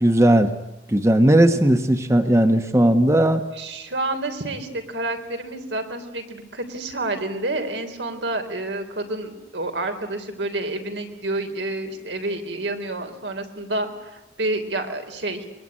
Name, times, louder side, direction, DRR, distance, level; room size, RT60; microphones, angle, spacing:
voice 1, 0.0-0.5 0.9-3.4, right 1 dB, 15° right, 7 dB, 1.1 m, -17 dB
voice 2, 3.6-15.5, right 2 dB, 75° right, 5 dB, 3.5 m, -29 dB
25.0 x 22.5 x 9.7 m, 0.95 s
head